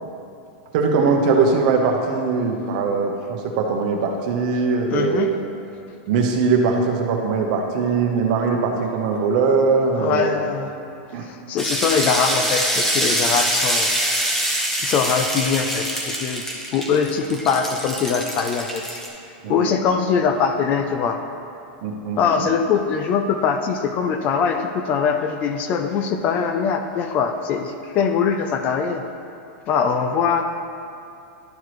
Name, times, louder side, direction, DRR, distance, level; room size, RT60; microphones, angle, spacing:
voice 1, 0.7-5.4 6.1-10.4 11.1-11.3 19.4-19.7 21.8-22.5, right 4 dB, 45° right, 2 dB, 0.9 m, -21 dB
voice 2, 4.9-5.3 9.9-10.7 11.2-14.1 14.8-16.4 16.7-19.0 19.5-21.2 22.2-29.0 29.7-30.4, left 6 dB, 30° left, 6 dB, 0.3 m, -22 dB
sound 1, 11.6-19.1, equal, 5° left, 0.8 m, -24 dB
11.5 x 4.6 x 3.1 m, 2.6 s
supercardioid pair, 160°, 5 cm